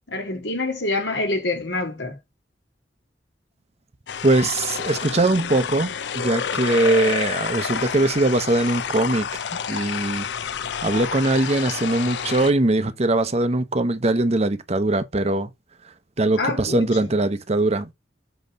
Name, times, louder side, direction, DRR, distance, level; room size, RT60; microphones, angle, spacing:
voice 1, 0.1-2.2 16.4-17.1, left 2 dB, 90° left, 2.7 m, -26 dB
sound 1, 4.1-12.5, left 7 dB, 70° left, 0.5 m, -29 dB
voice 2, 4.2-10.3 10.8-15.5 16.2-17.9, right 2 dB, 35° right, 0.9 m, -21 dB
7.9 x 3.1 x 5.2 m
head